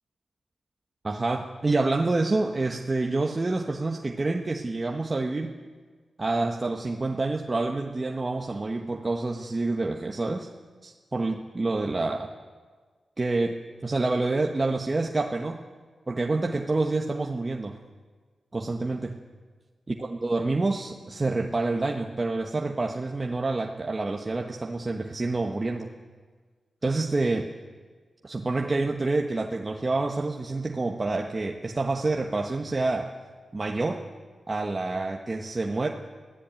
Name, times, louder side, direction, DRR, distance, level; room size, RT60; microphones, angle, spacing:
voice 1, 1.0-5.5 6.2-10.5 10.8-12.3 13.2-13.5 13.8-15.6 16.1-17.8 18.5-19.1 19.9-25.9 26.8-27.5 28.2-33.1 33.5-34.0 34.5-35.9, right 3 dB, 30° right, 1 dB, 1.3 m, -27 dB
23.5 x 15.5 x 9.0 m, 1.5 s
wide cardioid pair, 100°, 0 cm